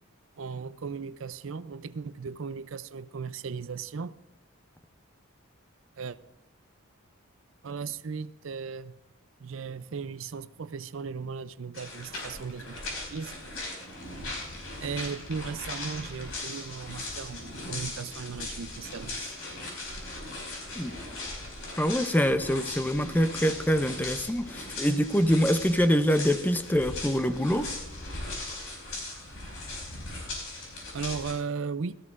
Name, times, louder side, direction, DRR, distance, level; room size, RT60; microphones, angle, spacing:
voice 1, 0.4-4.2 6.0-6.2 7.6-9.0 9.4-13.3 14.8-19.3 23.5-23.6 30.9-32.0, right 5 dB, 65° right, 0.5 m, -37 dB
sound 1, 11.7-31.3, left 2 dB, 85° left, 5.2 m, -39 dB
voice 2, 21.8-27.7, equal, 10° left, 0.5 m, -25 dB
16.0 x 14.0 x 2.5 m
head